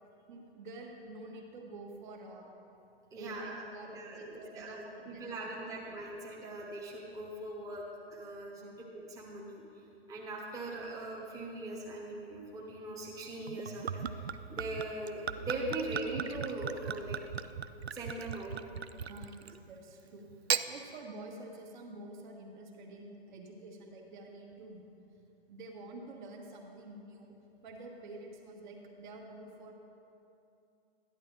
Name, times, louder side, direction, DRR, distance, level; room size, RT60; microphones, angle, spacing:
voice 1, 0.3-2.5 3.1-5.8 8.6-8.8 19.1-20.3 20.7-24.8 25.5-27.4 27.6-29.7, right 2 dB, 50° right, 1 dB, 1.6 m, -48 dB
voice 2, 3.1-3.6 3.9-7.8 8.1-8.6 8.9-9.6 10.1-17.2 17.9-18.6, right 2 dB, 10° right, -4 dB, 1.2 m, -41 dB
Gurgling / Chink clink / Liquid, 13.5-19.6 20.3-20.7, right 7 dB, 85° right, 0.5 m, -37 dB
12.5 x 10.5 x 3.3 m, 2.7 s
figure-of-eight pair, 110°, 31 cm